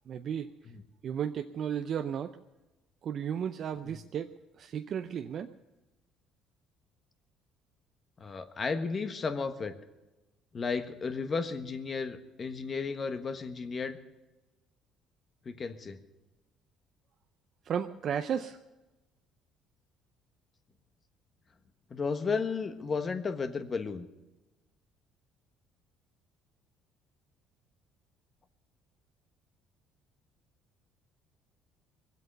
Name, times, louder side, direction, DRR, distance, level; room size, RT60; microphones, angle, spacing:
voice 1, 0.1-0.5 1.0-2.3 3.0-5.5 17.7-18.6, right 8 dB, 55° right, 8 dB, 0.6 m, -34 dB
voice 2, 8.2-9.8 10.5-14.0 15.4-16.0 21.9-24.1, left 4 dB, 35° left, 8 dB, 1.3 m, -33 dB
21.5 x 8.2 x 6.7 m, 1.1 s
supercardioid pair, 90°, 0 cm